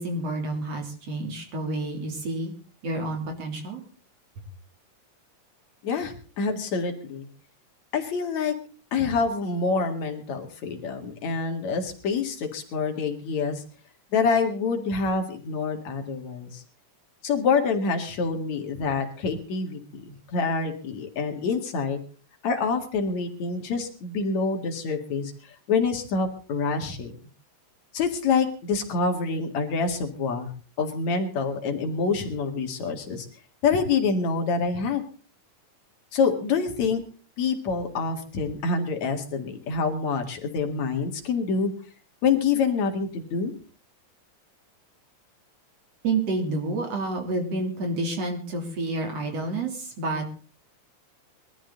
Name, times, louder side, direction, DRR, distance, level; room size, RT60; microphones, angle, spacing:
voice 1, 0.0-2.5 2.8-3.8 46.0-50.4, right 2 dB, 55° right, 3 dB, 4.2 m, -29 dB
voice 2, 5.8-7.3 7.9-8.5 8.9-13.6 14.1-16.6 17.2-22.0 22.4-25.3 25.7-27.1 27.9-30.5 30.8-33.3 33.6-35.0 36.1-37.0 37.4-41.7 42.2-43.5, left 5 dB, 65° left, 4 dB, 3.3 m, -26 dB
21.5 x 13.0 x 3.9 m, 0.38 s
omnidirectional pair, 3.4 m